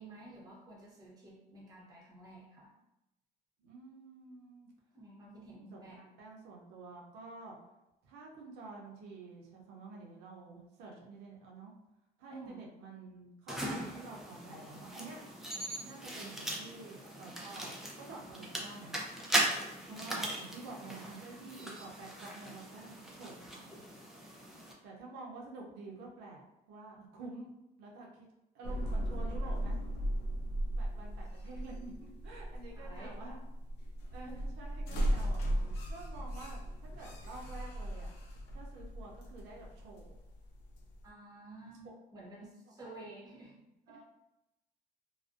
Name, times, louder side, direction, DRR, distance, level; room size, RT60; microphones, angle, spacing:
voice 1, 0.0-2.7 4.9-6.0 12.3-12.7 19.9-20.0 22.7-22.8 32.7-33.2 41.0-43.5 43.9-44.0, right 2 dB, 20° right, -4 dB, 0.8 m, -51 dB
voice 2, 3.6-4.7 5.6-7.6 8.0-11.7 12.2-15.2 15.8-19.0 19.9-23.8 24.5-26.4 26.7-27.5 27.8-28.3 28.5-29.8 30.8-33.4 34.1-35.4 35.9-38.1 38.5-40.2 43.9-44.0, right 3 dB, 85° right, -2 dB, 0.5 m, -49 dB
sound 1, 13.5-24.7, right 1 dB, ahead, 0.4 m, -39 dB
sound 2, 28.6-41.1, right 1 dB, 90° left, 0.5 m, -37 dB
2.4 x 2.1 x 2.4 m, 0.92 s
cardioid pair, 110°, 17 cm